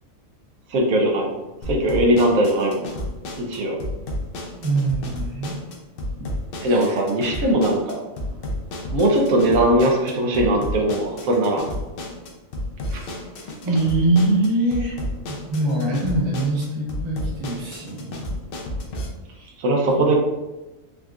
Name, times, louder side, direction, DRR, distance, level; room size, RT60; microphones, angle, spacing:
voice 1, 0.7-1.3 1.7-2.9 3.4-3.8 6.6-8.0 8.9-11.7 12.9-13.0 19.6-20.2, right 1 dB, 85° right, 0 dB, 1.1 m, -20 dB
sound 1, 1.6-19.1, left 1 dB, 70° left, 0.5 m, -32 dB
voice 2, 4.6-5.6 6.7-7.0 13.6-15.0 15.3-18.4 19.2-19.5 19.9-20.1, right 2 dB, 30° right, -4 dB, 0.5 m, -23 dB
3.6 x 2.3 x 2.4 m, 1.0 s
omnidirectional pair, 1.4 m